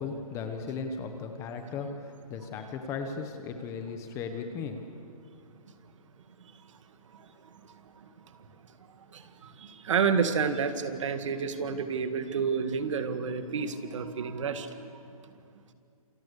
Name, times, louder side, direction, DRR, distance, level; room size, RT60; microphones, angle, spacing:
voice 1, 0.0-4.8, left 5 dB, 15° left, 6 dB, 1.2 m, -36 dB
voice 2, 9.1-14.9, right 6 dB, 55° right, 9 dB, 2.0 m, -30 dB
28.0 x 27.5 x 6.9 m, 2.4 s
hypercardioid pair, 160°, 19 cm